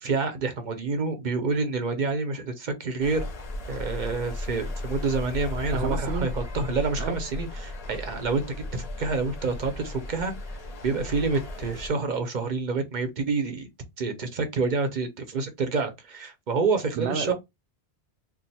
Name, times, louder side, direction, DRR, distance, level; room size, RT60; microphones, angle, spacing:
voice 1, 0.0-3.2 3.7-8.4 8.7-10.3 10.8-13.7 14.0-17.3, right 4 dB, 50° right, 0.7 m, -28 dB
sound 1, 3.0-11.9, left 2 dB, 45° left, 0.6 m, -35 dB
voice 2, 5.7-6.3 7.0-7.2 16.9-17.3, right 5 dB, 75° right, 0.9 m, -30 dB
2.4 x 2.2 x 4.0 m
omnidirectional pair, 1.2 m